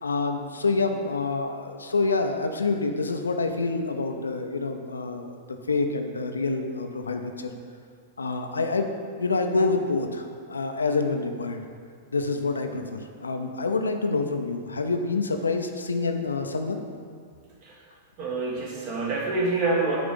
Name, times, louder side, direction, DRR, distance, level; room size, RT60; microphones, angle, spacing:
voice 1, 0.0-7.5 8.2-11.6 12.1-16.8, left 3 dB, 75° left, 5 dB, 0.5 m, -27 dB
voice 2, 18.2-20.0, right 3 dB, 45° right, -2 dB, 1.6 m, -26 dB
9.0 x 3.5 x 5.2 m, 2.1 s
figure-of-eight pair, 95°, 0 cm